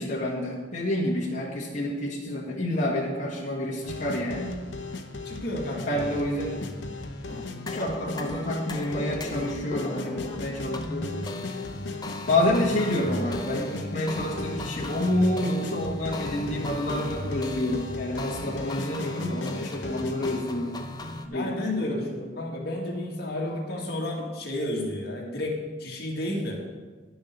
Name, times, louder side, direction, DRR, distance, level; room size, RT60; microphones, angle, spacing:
voice 1, 0.0-4.5 5.9-6.5 7.7-11.1 12.3-20.7 21.3-21.5 21.8-22.0, left 1 dB, 40° left, -5 dB, 1.7 m, -28 dB
sound 1, 3.8-20.4, left 3 dB, 75° left, 0.8 m, -37 dB
voice 2, 5.2-6.2 6.5-6.9 21.2-26.6, left 1 dB, 55° left, -1 dB, 1.9 m, -32 dB
sound 2, 7.3-21.3, left 1 dB, 20° left, 0.6 m, -37 dB
10.5 x 6.9 x 6.7 m, 1.3 s
head